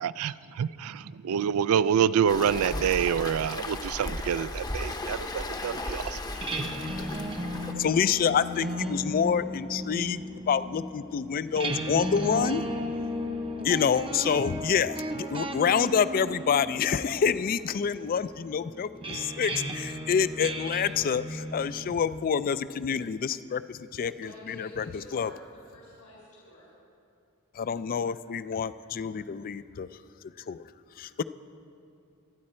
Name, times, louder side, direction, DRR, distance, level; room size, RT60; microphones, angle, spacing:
voice 1, 0.0-6.2, right 8 dB, 75° right, 17 dB, 0.4 m, -27 dB
Waves surf, 2.3-7.7, left 2 dB, 20° left, 0.7 m, -35 dB
sound 1, 6.2-21.9, right 1 dB, 25° right, 0.7 m, -35 dB
voice 2, 7.8-12.6 13.6-24.9 25.1-25.3 27.6-29.9 30.5-30.6 31.0-31.2, left 7 dB, 40° left, 15 dB, 0.3 m, -27 dB
voice 3, 24.2-26.7, left 1 dB, 90° left, -6 dB, 4.4 m, -49 dB
24.5 x 9.7 x 4.3 m, 2.5 s
head